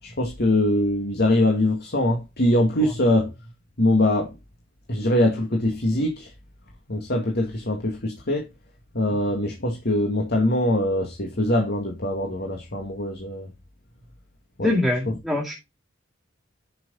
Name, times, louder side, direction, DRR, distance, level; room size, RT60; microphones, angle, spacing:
voice 1, 0.0-3.3 3.8-4.4 4.9-6.3 6.9-8.5 8.9-13.5 14.6-14.7 15.1-15.2, left 1 dB, 55° left, 2.2 m, -23 dB
voice 2, 14.6-15.5, left 2 dB, ahead, 2.2 m, -23 dB
10.5 x 6.5 x 4.0 m
head